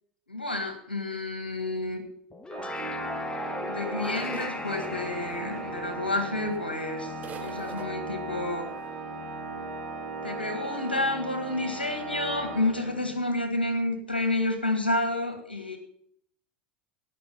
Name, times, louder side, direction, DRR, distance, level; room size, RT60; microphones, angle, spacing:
voice 1, 0.3-2.0 3.7-8.7 10.2-15.8, left 2 dB, 85° left, 7 dB, 1.8 m, -30 dB
sound 1, 2.3-7.8, left 2 dB, 15° left, 1.1 m, -39 dB
Organ, 2.5-13.3, right 3 dB, 65° right, 4.4 m, -37 dB
sound 2, 4.0-5.9 6.5-6.6 6.8-6.9 7.2-7.9, right 7 dB, 30° right, 1.7 m, -43 dB
17.5 x 6.1 x 5.5 m, 0.66 s
figure-of-eight pair, 80°, 5 cm